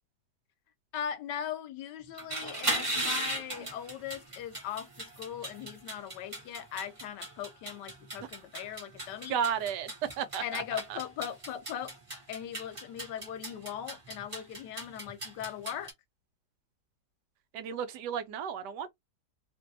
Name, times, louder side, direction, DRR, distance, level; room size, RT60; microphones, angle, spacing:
voice 1, 0.9-9.3 10.4-11.9 12.3-15.9, left 10 dB, 85° left, 1.3 m, -39 dB
sound 1, 2.1-15.9, right 1 dB, 25° right, 0.9 m, -38 dB
voice 2, 9.3-11.0 17.5-18.9, right 8 dB, 80° right, 1.2 m, -33 dB
2.8 x 2.6 x 2.6 m
omnidirectional pair, 1.8 m